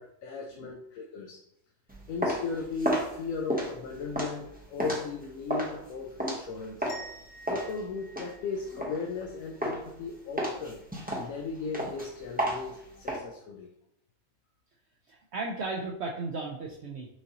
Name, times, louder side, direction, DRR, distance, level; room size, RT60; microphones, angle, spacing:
voice 1, 0.0-1.4 2.1-6.9 7.5-10.8 11.2-13.7, left 4 dB, 80° left, 1 dB, 1.0 m, -36 dB
sound 1, 1.9-7.1 7.5-9.3 9.6-10.0 10.4-13.2, equal, 10° right, 0.4 m, -32 dB
sound 2, 6.9-9.7, right 2 dB, 60° left, 0.3 m, -49 dB
voice 2, 15.1-17.1, right 3 dB, 60° right, -1 dB, 0.8 m, -35 dB
6.0 x 2.7 x 2.8 m, 0.75 s
omnidirectional pair, 1.4 m